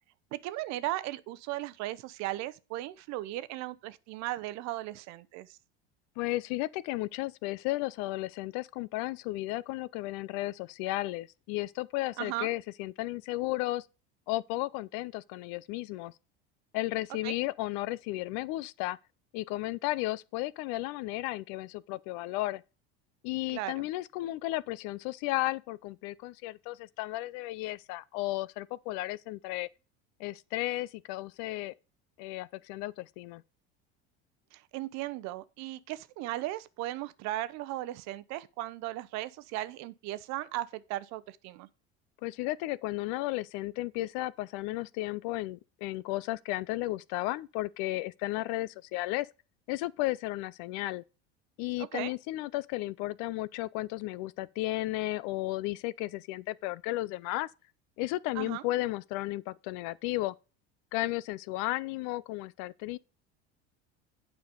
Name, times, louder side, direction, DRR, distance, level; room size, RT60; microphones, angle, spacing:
voice 1, 0.3-5.6 12.2-12.5 17.2-17.3 23.5-23.7 34.5-41.7 51.8-52.1 58.3-58.6, right 16 dB, 60° right, 0.8 m, -37 dB
voice 2, 6.2-13.9 14.3-16.1 16.7-19.0 19.3-22.6 23.2-29.7 30.2-31.7 32.2-33.4 42.2-49.3 49.7-51.0 51.6-57.5 58.0-60.3 60.9-63.0, left 18 dB, 60° left, 0.5 m, -34 dB
8.9 x 5.2 x 5.1 m
hypercardioid pair, 85°, 32 cm